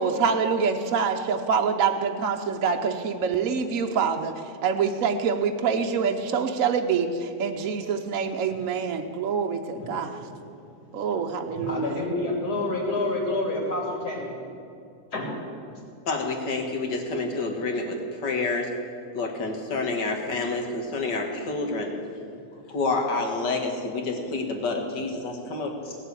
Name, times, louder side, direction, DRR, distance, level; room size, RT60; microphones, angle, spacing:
voice 1, 0.0-4.3 4.6-10.2 10.9-12.0, right 6 dB, 60° right, 4 dB, 1.0 m, -25 dB
voice 2, 9.8-10.6 11.5-14.4 15.1-15.3 15.7-15.8 22.3-22.4 25.8-25.9, left 2 dB, 65° left, -1 dB, 3.2 m, -29 dB
voice 3, 16.1-18.7 19.1-21.9 22.7-25.7, left 3 dB, 80° left, 2 dB, 2.3 m, -28 dB
17.0 x 7.6 x 8.4 m, 2.5 s
omnidirectional pair, 1.9 m